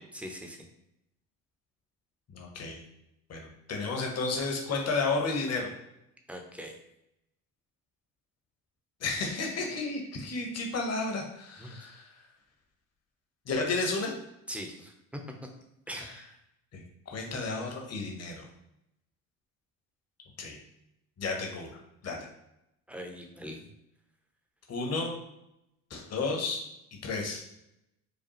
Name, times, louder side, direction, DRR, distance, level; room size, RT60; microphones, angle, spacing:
voice 1, 0.1-0.6 6.3-6.8 11.6-11.8 14.5-15.2 15.9-16.3 22.9-23.6, equal, 5° right, 3 dB, 0.7 m, -41 dB
voice 2, 2.3-2.8 3.3-5.7 9.0-12.0 13.5-14.1 16.0-16.1 16.7-18.4 20.4-20.6 21.2-21.7 22.0-22.3 24.7-25.1 25.9-26.6 27.0-27.4, left 3 dB, 35° left, 1 dB, 1.1 m, -32 dB
5.0 x 2.3 x 3.1 m, 0.84 s
supercardioid pair, 80°, 42 cm